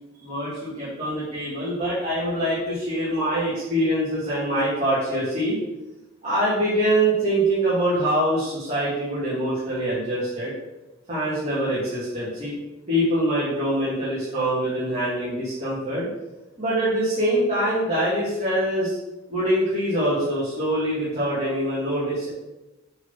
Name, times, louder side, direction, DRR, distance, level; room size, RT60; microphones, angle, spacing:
voice 1, 0.2-5.6 6.2-10.5 11.1-12.5 12.9-16.1 16.6-19.0 19.3-22.3, right 1 dB, 30° right, -10 dB, 2.3 m, -24 dB
6.9 x 4.0 x 5.8 m, 1.0 s
head